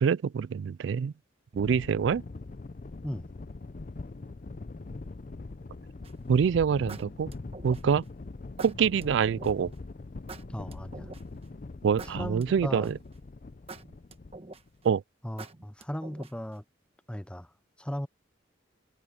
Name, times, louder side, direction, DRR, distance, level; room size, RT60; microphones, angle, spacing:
voice 1, 0.0-1.1 1.5-2.2 6.3-7.3 7.6-8.0 8.6-9.7 11.8-13.0 14.8-15.0, right 7 dB, 70° right, 0.3 m, -25 dB
sound 1, 1.5-14.9, left 3 dB, 45° left, 0.5 m, -42 dB
sound 2, 6.0-6.3 6.9-8.0 8.6-9.5 10.3-11.4 12.0-13.1 13.7-14.8 15.4-16.5, right 3 dB, 30° right, 1.2 m, -45 dB
voice 2, 10.5-11.1 12.0-12.9 15.2-16.6 17.1-17.5 17.8-18.1, equal, 5° left, 0.8 m, -37 dB
head